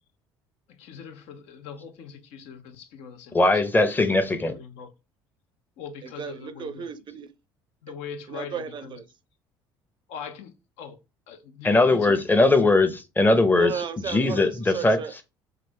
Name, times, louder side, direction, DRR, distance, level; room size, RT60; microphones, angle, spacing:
voice 1, 0.7-3.6 4.0-4.9 5.8-6.9 7.8-9.0 10.1-11.0 11.3-12.2, left 7 dB, 65° left, 0.5 m, -41 dB
voice 2, 3.3-4.6 11.6-13.7 14.1-15.0, left 2 dB, 15° left, 0.6 m, -20 dB
voice 3, 6.0-7.3 8.3-9.1 13.6-15.2, right 7 dB, 40° right, 0.5 m, -35 dB
3.3 x 2.5 x 3.4 m
hypercardioid pair, 60°, 12 cm